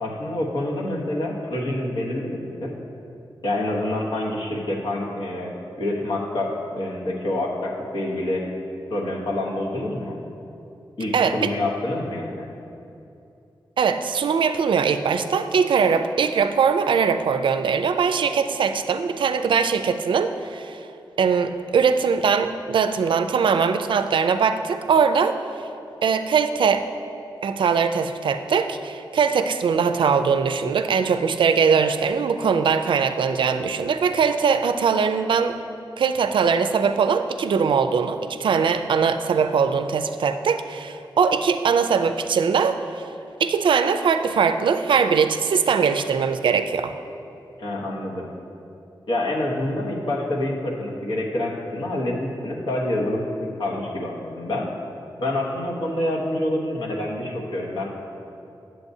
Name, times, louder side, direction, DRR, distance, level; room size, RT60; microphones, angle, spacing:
voice 1, 0.0-2.7 3.4-5.5 5.8-8.5 8.9-10.2 11.0-12.5 47.6-48.3 49.1-54.7 55.2-57.9, left 1 dB, 70° left, -2 dB, 1.1 m, -27 dB
voice 2, 11.1-11.5 13.8-20.8 21.2-25.3 26.0-26.8 27.4-35.6 36.0-43.1 43.4-46.9, right 6 dB, 75° right, 9 dB, 0.4 m, -21 dB
9.5 x 7.6 x 2.7 m, 2.7 s
wide cardioid pair, 130°, 8 cm